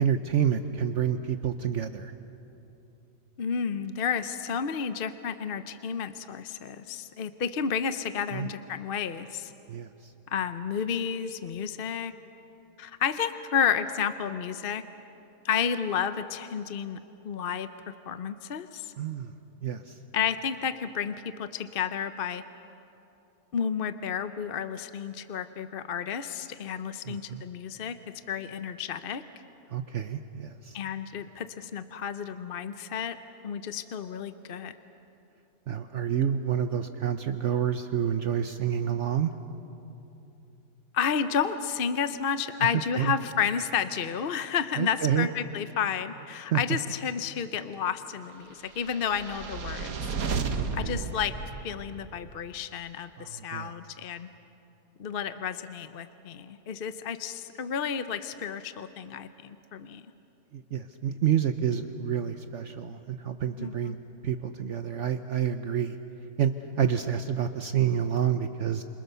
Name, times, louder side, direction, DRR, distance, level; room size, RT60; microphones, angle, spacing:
voice 1, 0.0-2.1 8.3-8.5 9.7-10.1 19.0-19.3 19.6-20.0 27.1-27.4 29.7-30.8 35.7-39.3 42.6-43.1 44.8-45.3 46.5-46.6 50.5-51.0 53.2-53.7 60.5-64.0 64.2-66.0 66.4-68.8, right 9 dB, 60° right, 8 dB, 1.0 m, -28 dB
voice 2, 3.4-9.5 10.3-12.1 12.8-14.8 15.4-17.0 17.2-18.9 20.1-22.4 23.5-28.0 28.3-29.2 30.7-33.2 33.4-34.8 40.9-50.0 50.7-51.3 51.6-54.3 55.0-60.0 63.6-64.0, left 7 dB, 50° left, 11 dB, 0.8 m, -31 dB
sound 1, 48.8-52.2, right 5 dB, 75° right, 1.7 m, -33 dB
28.0 x 27.0 x 6.8 m, 2.9 s
omnidirectional pair, 1.5 m